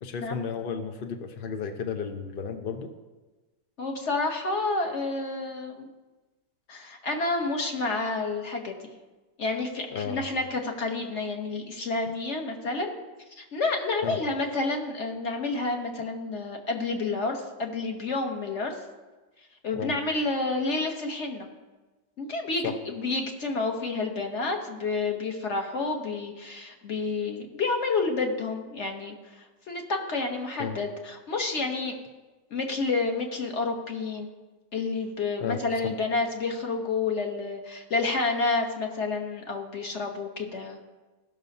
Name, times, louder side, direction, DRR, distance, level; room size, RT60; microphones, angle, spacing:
voice 1, 0.0-2.9 9.9-10.2 14.0-14.2 19.7-19.9 22.6-22.8 30.6-30.8 35.4-35.9, left 6 dB, 60° left, 5 dB, 0.5 m, -33 dB
voice 2, 3.8-5.9 6.7-8.8 9.4-13.0 13.4-18.7 19.6-21.5 22.2-32.0 32.5-34.3 34.7-40.8, left 3 dB, 40° left, 3 dB, 1.4 m, -29 dB
15.5 x 6.5 x 5.3 m, 1.2 s
omnidirectional pair, 2.0 m